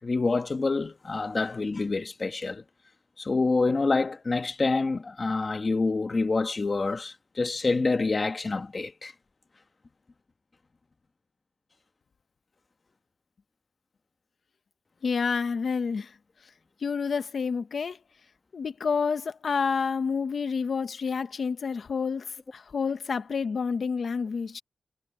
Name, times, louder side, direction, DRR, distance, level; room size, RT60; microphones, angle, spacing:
voice 1, 0.0-2.6 3.2-9.1, left 3 dB, 30° left, 1.3 m, -27 dB
voice 2, 15.0-16.1 16.8-18.0 18.5-24.6, left 5 dB, 45° left, 1.1 m, -29 dB
wide cardioid pair, 180°, 0 cm